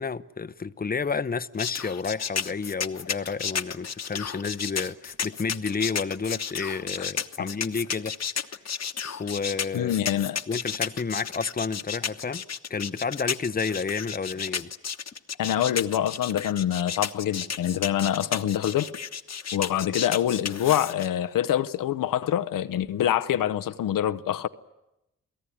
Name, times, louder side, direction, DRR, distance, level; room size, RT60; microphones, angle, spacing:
voice 1, 0.0-8.1 9.2-10.0 10.5-12.4 12.7-14.7, left 5 dB, 30° left, 0.9 m, -30 dB
sound 1, 1.6-21.1, left 7 dB, 55° left, 1.2 m, -32 dB
voice 2, 9.7-10.4 15.4-18.9 19.5-24.5, left 11 dB, 85° left, 0.8 m, -25 dB
28.5 x 17.5 x 10.0 m
cardioid pair, 60°, 32 cm